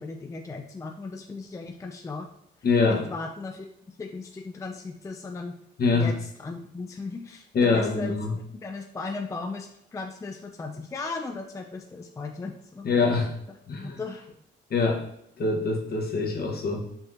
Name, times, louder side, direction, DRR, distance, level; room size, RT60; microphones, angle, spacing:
voice 1, 0.0-2.3 2.9-5.5 5.9-8.1 8.5-12.9 13.7-14.3, left 3 dB, 15° left, 3 dB, 0.3 m, -37 dB
voice 2, 2.6-3.1 5.8-6.1 7.5-8.3 12.8-13.3 13.7-14.0 14.7-15.0 15.4-16.8, left 4 dB, 50° left, 1 dB, 1.0 m, -24 dB
5.6 x 2.8 x 2.5 m, 0.75 s
cardioid pair, 90°, 20 cm